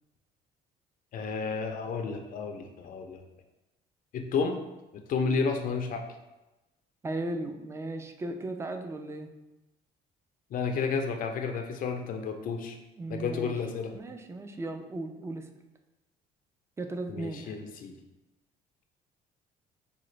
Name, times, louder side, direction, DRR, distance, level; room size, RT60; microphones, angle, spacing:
voice 1, 1.1-3.2 4.1-4.6 4.9-6.1 10.5-12.8 13.1-13.9 17.1-18.0, left 5 dB, 55° left, 4 dB, 0.4 m, -31 dB
voice 2, 7.0-9.3 13.0-13.6 13.9-15.5 16.8-17.6, right 2 dB, 15° right, 6 dB, 0.3 m, -36 dB
4.9 x 2.3 x 3.1 m, 1.0 s
cardioid pair, 110°, 17 cm